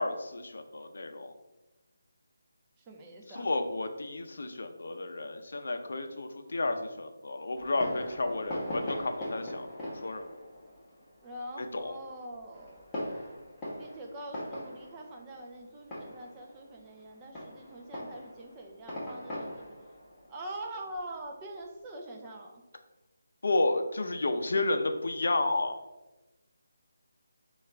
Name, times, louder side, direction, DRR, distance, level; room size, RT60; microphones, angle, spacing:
voice 1, 0.0-1.3 3.3-10.3 11.8-12.0 23.4-25.8, left 2 dB, 65° left, 6 dB, 0.5 m, -31 dB
voice 2, 2.8-3.5 11.2-12.9 13.8-19.7 20.3-22.6, right 1 dB, 15° right, 1 dB, 0.4 m, -44 dB
Fireworks, 7.6-21.7, left 1 dB, 10° left, 0.9 m, -41 dB
5.7 x 2.4 x 3.4 m, 1.1 s
figure-of-eight pair, 170°, 0 cm